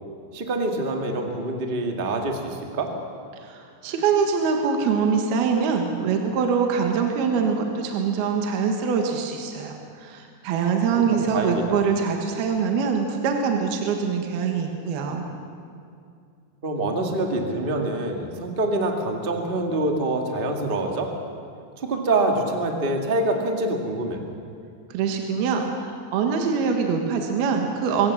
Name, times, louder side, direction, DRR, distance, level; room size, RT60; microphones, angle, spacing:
voice 1, 0.3-2.9 11.1-11.8 16.6-21.1 21.8-24.2, right 2 dB, 40° right, 3 dB, 0.7 m, -25 dB
voice 2, 3.4-15.2 24.9-28.1, right 6 dB, 70° right, 3 dB, 3.3 m, -24 dB
24.0 x 16.5 x 7.4 m, 2.4 s
omnidirectional pair, 4.7 m